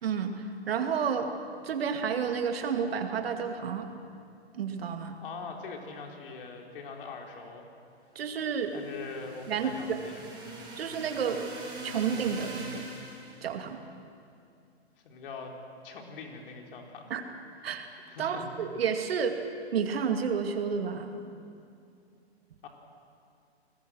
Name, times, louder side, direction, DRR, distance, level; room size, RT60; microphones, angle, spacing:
voice 1, 0.0-1.3 1.6-3.9 4.5-5.2 8.1-8.7 9.5-10.0 10.8-11.5 11.8-12.9 13.4-13.8 17.1-17.2 17.6-17.9 18.2-19.4 19.7-21.2, right 6 dB, 60° right, 6 dB, 2.5 m, -30 dB
voice 2, 5.2-7.6 8.7-10.3 15.0-15.5 15.8-17.1 18.1-18.5 22.6-22.7, left 4 dB, 55° left, 2 dB, 4.2 m, -42 dB
sound 1, 8.5-13.5, right 2 dB, 15° right, 6.9 m, -43 dB
28.5 x 20.5 x 6.5 m, 2.5 s
hypercardioid pair, 130°, 33 cm